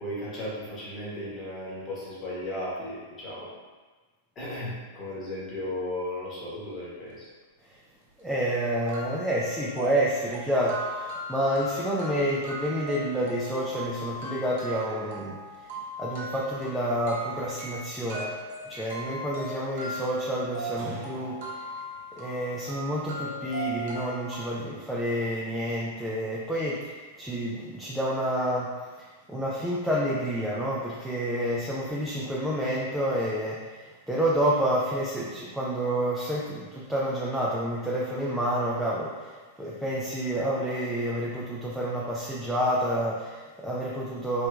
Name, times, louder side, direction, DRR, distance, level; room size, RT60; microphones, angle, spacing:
voice 1, 0.0-3.5 4.3-7.3, left 1 dB, 30° left, -8 dB, 1.1 m, -35 dB
sound 1, 7.9-8.0 8.4-8.5 8.9-24.4, right 1 dB, 60° right, 0.8 m, -38 dB
voice 2, 8.2-15.7 16.0-18.4 18.7-21.6 22.2-39.3 39.6-44.5, equal, 5° right, -6 dB, 0.4 m, -29 dB
3.3 x 2.8 x 2.3 m, 1.4 s
figure-of-eight pair, 95°, 0 cm